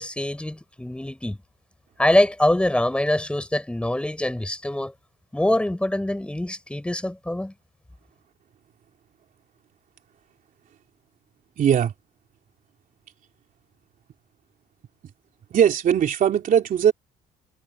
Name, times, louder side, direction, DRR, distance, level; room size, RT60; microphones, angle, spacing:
voice 1, 0.0-1.4 2.0-4.9 5.3-7.5, left 1 dB, 5° left, 7.0 m, -24 dB
voice 2, 11.6-11.9 15.5-16.9, right 9 dB, 55° right, 3.2 m, -19 dB
cardioid pair, 110°, 17 cm